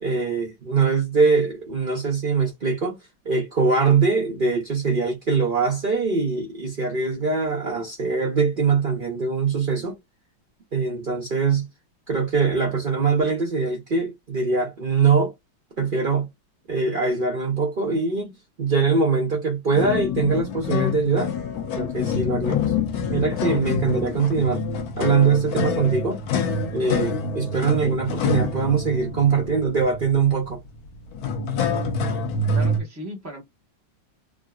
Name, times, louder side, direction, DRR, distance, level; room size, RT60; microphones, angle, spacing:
voice 1, 0.0-10.0 10.7-11.7 12.1-15.3 15.8-16.3 16.7-21.3 21.7-22.7 23.1-24.6 25.0-26.2 26.7-30.6, right 5 dB, 80° right, 0.4 m, -22 dB
sound 1, 19.7-32.8, left 4 dB, 65° left, 1.0 m, -26 dB
voice 2, 32.5-33.4, right 1 dB, 15° right, 0.6 m, -36 dB
3.5 x 2.0 x 2.3 m
omnidirectional pair, 2.1 m